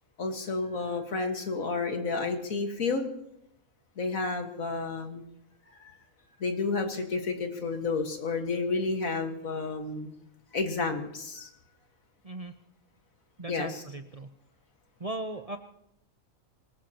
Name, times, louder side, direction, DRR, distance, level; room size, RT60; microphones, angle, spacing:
voice 1, 0.2-3.1 4.0-5.2 5.8-5.9 6.4-10.1 10.5-11.5 13.5-13.8, left 3 dB, 75° left, 5 dB, 2.0 m, -31 dB
voice 2, 13.4-14.3 15.0-15.6, right 2 dB, 35° right, 5 dB, 0.6 m, -37 dB
24.0 x 19.5 x 2.9 m, 0.79 s
omnidirectional pair, 1.4 m